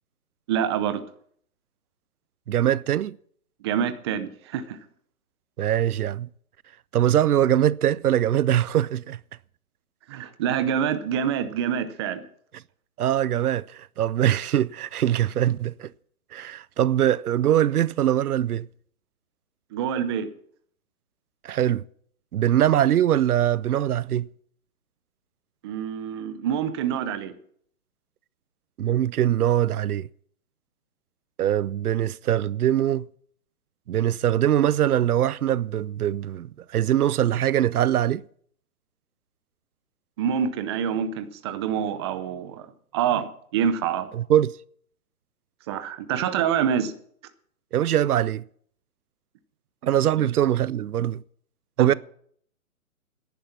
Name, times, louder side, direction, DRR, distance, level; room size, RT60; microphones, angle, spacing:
voice 1, 0.5-1.0 3.6-4.8 10.1-12.2 19.7-20.3 25.6-27.3 40.2-42.7 42.9-44.1 45.7-46.9 50.2-50.3 51.8-51.9, right 8 dB, 20° right, 0.6 m, -26 dB
voice 2, 2.5-3.2 5.6-6.3 6.9-9.2 13.0-15.9 16.3-18.7 21.4-21.8 22.3-24.3 28.8-30.1 31.4-33.1 33.9-38.2 44.1-44.5 47.7-48.4 49.8-51.2 51.8-51.9, right 11 dB, 85° right, 0.6 m, -22 dB
10.5 x 10.5 x 7.2 m
hypercardioid pair, 150°, 43 cm